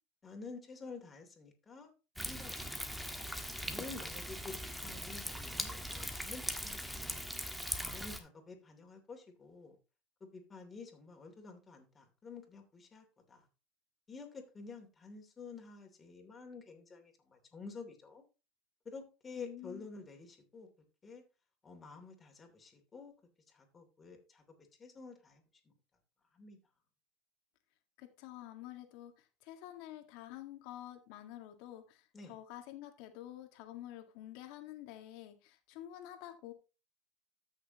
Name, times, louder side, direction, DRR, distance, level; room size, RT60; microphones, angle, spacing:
voice 1, 0.2-1.9 2.2-3.1 3.6-7.2 7.8-9.8 10.2-13.4 14.1-18.2 18.8-20.7 21.0-21.2 21.6-23.1 23.5-24.4 24.8-25.4 26.3-26.6 32.1-32.3, left 4 dB, 25° left, 2.9 m, -50 dB
Thunder, 2.2-8.2, equal, ahead, 1.4 m, -40 dB
voice 2, 19.4-19.9 28.0-36.5, left 13 dB, 70° left, 1.8 m, -49 dB
13.5 x 6.5 x 3.0 m
supercardioid pair, 105°, 0 cm